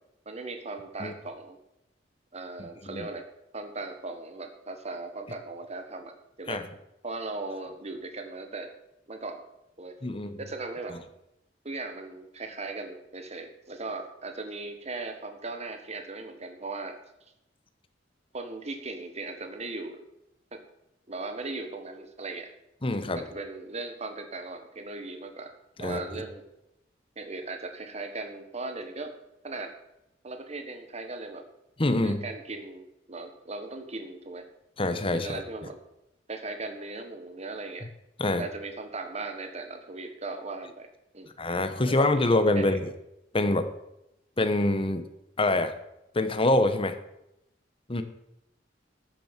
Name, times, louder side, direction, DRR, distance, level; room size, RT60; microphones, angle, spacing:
voice 1, 0.2-1.6 2.3-3.3 3.5-6.1 6.4-6.6 7.0-8.7 9.1-9.4 9.8-9.9 10.4-10.9 11.6-17.0 18.3-20.0 20.5-20.6 21.1-22.5 23.1-25.5 25.8-26.4 27.1-29.1 29.4-29.7 30.2-31.4 32.0-34.5 35.1-35.8 36.3-37.9 38.4-40.9 41.1-41.3 41.9-42.2 42.5-42.8, right 3 dB, 35° right, 6 dB, 1.4 m, -38 dB
voice 2, 10.0-10.4 22.8-23.2 25.8-26.0 31.8-32.2 34.8-35.4 38.2-38.4 41.4-42.9 43.3-43.7 44.4-45.0 45.4-45.7 46.1-47.0 47.9-48.0, left 2 dB, 30° left, 9 dB, 1.0 m, -25 dB
13.5 x 7.7 x 7.4 m, 0.86 s
head